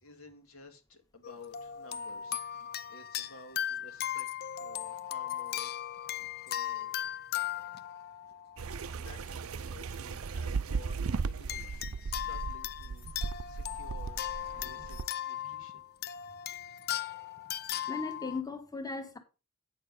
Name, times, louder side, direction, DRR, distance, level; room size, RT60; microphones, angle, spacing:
voice 1, 0.0-2.5 2.9-4.3 4.6-6.0 6.5-7.0 9.0-14.2 14.5-15.0 15.3-15.8, left 2 dB, 70° left, 1.9 m, -54 dB
sound 1, 1.2-9.1 9.8-10.0 11.5-18.4, left 11 dB, 50° left, 0.5 m, -38 dB
sound 2, 8.6-15.1, right 5 dB, 80° right, 0.6 m, -36 dB
voice 2, 17.9-19.2, left 3 dB, 20° left, 1.5 m, -38 dB
8.9 x 6.7 x 5.3 m
head